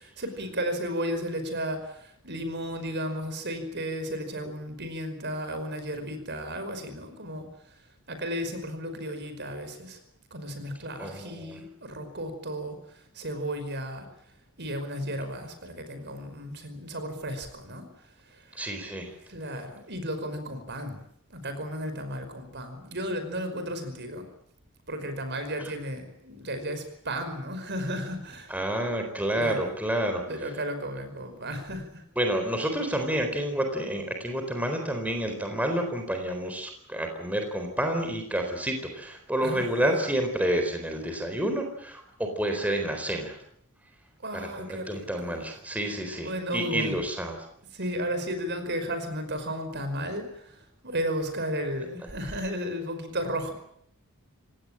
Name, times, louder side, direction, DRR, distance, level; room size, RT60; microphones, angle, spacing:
voice 1, 0.2-1.8 2.2-7.4 8.1-10.0 10.3-12.8 13.2-14.0 14.6-17.9 19.3-21.0 21.3-24.3 24.9-28.5 29.3-29.7 30.3-31.8 39.4-39.8 44.2-45.4 46.2-46.9 47.7-50.3 50.8-53.5, equal, 50° right, 9 dB, 5.2 m, -33 dB
voice 2, 11.0-11.6 18.5-19.1 25.6-25.7 28.5-30.6 32.2-43.4 44.3-47.4, right 1 dB, 5° right, 4 dB, 4.1 m, -29 dB
26.5 x 18.5 x 8.8 m, 0.71 s
head